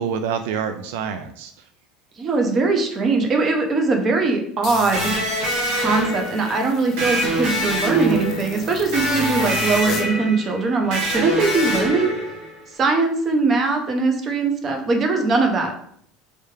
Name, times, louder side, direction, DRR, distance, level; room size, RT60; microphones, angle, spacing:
voice 1, 0.0-1.5, right 7 dB, 80° right, 8 dB, 0.3 m, -26 dB
voice 2, 2.2-5.1 5.7-12.1 12.8-15.7, right 3 dB, 30° right, 3 dB, 0.7 m, -21 dB
sound 1, 4.6-10.1, left 7 dB, 45° left, 0.5 m, -36 dB
Electric guitar, 4.9-12.6, right 1 dB, 65° right, 1.1 m, -25 dB
3.3 x 3.3 x 3.2 m, 0.65 s
cardioid pair, 150°, 0 cm